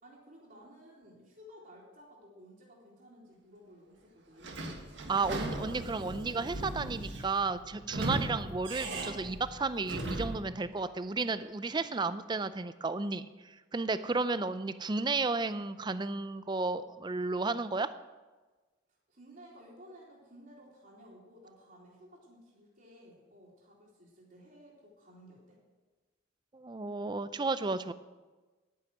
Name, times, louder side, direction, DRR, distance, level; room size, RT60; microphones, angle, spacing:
voice 1, 0.0-4.8 18.9-25.6, equal, 50° right, -8 dB, 2.9 m, -55 dB
Sliding door / Squeak, 4.4-10.5, right 2 dB, 70° right, 1.6 m, -38 dB
voice 2, 5.1-17.9 26.5-27.9, right 3 dB, 25° right, 13 dB, 0.4 m, -33 dB
10.5 x 9.6 x 6.2 m, 1.2 s
head